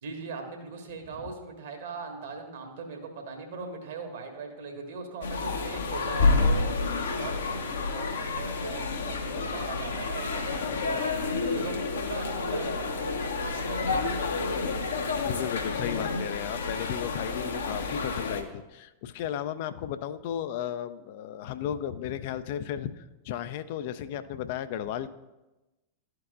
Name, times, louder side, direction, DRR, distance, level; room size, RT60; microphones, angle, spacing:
voice 1, 0.0-6.7 7.1-14.0, right 4 dB, 60° right, 4 dB, 1.3 m, -40 dB
sound 1, 5.2-18.4, left 3 dB, 65° left, 0.8 m, -29 dB
voice 2, 15.1-25.1, left 10 dB, 50° left, 12 dB, 0.3 m, -34 dB
12.5 x 4.6 x 2.4 m, 1.0 s
figure-of-eight pair, 90°, 0 cm